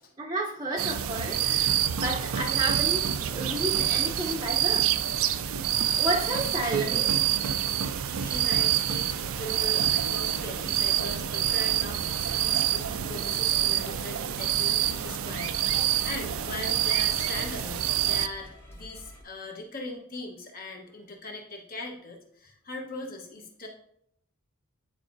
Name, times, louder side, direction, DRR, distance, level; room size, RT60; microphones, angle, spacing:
voice 1, 0.2-5.0 6.0-7.3 15.7-15.8, right 2 dB, 20° right, -3 dB, 0.7 m, -31 dB
sound 1, 0.8-18.3, right 11 dB, 70° right, 0.4 m, -27 dB
sound 2, 1.2-19.2, equal, 10° left, 0.9 m, -47 dB
voice 2, 7.8-23.7, left 2 dB, 40° left, 1 dB, 1.2 m, -40 dB
9.9 x 4.7 x 2.6 m, 0.73 s
head